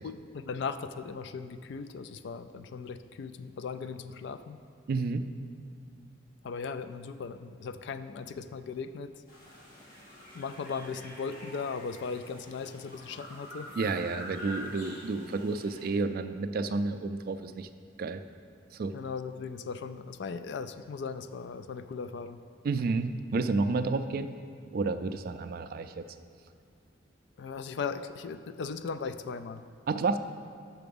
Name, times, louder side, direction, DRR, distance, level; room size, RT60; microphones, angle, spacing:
voice 1, 0.0-4.6 6.4-9.1 10.3-13.7 18.9-22.4 27.4-29.6, left 5 dB, 65° left, 12 dB, 0.3 m, -38 dB
voice 2, 4.9-5.3 13.8-17.7 18.0-18.2 18.7-18.9 22.6-24.3 24.7-26.0 29.9-30.2, right 3 dB, 50° right, 10 dB, 0.3 m, -30 dB
sound 1, 9.3-15.9, left 1 dB, 50° left, 1.7 m, -46 dB
6.8 x 6.0 x 5.3 m, 2.3 s
head